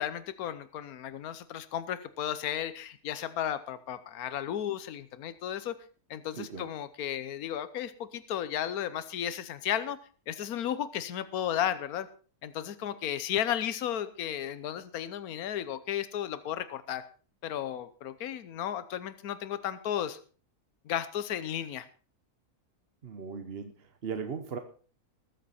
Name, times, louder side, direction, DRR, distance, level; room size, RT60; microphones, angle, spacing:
voice 1, 0.0-5.8 6.1-10.0 10.3-12.1 12.4-17.0 17.4-20.2 20.8-21.9, left 10 dB, 75° left, 14 dB, 1.3 m, -34 dB
voice 2, 6.4-6.7 23.0-24.6, right 6 dB, 45° right, 7 dB, 1.1 m, -38 dB
21.0 x 7.9 x 4.2 m, 0.39 s
omnidirectional pair, 1.6 m